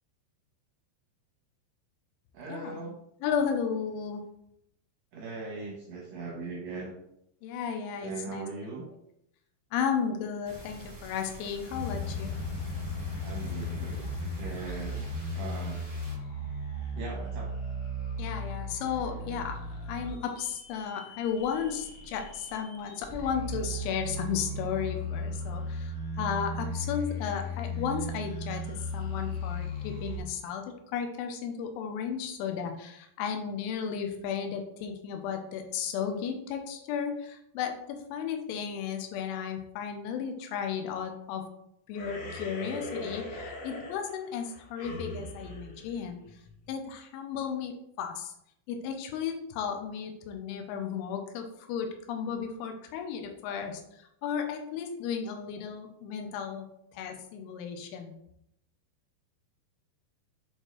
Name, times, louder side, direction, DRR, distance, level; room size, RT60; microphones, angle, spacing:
voice 1, 2.3-3.0 5.1-6.9 8.0-8.9 13.2-14.0 14.4-15.1 15.3-15.9 16.9-17.5, right 3 dB, 80° right, -2 dB, 2.0 m, -39 dB
voice 2, 3.2-4.2 7.4-8.5 9.7-12.3 18.2-19.6 19.9-41.4 41.9-46.2 46.7-48.3 48.7-53.8 54.2-56.7 56.9-58.1, left 7 dB, 90° left, 4 dB, 3.2 m, -34 dB
sound 1, 10.4-16.1, right 2 dB, 45° right, 0.8 m, -48 dB
sound 2, 11.7-30.2, left 1 dB, 75° left, 2.0 m, -36 dB
sound 3, 41.9-46.7, left 1 dB, 55° left, 2.4 m, -41 dB
7.8 x 4.5 x 3.2 m, 0.75 s
omnidirectional pair, 5.5 m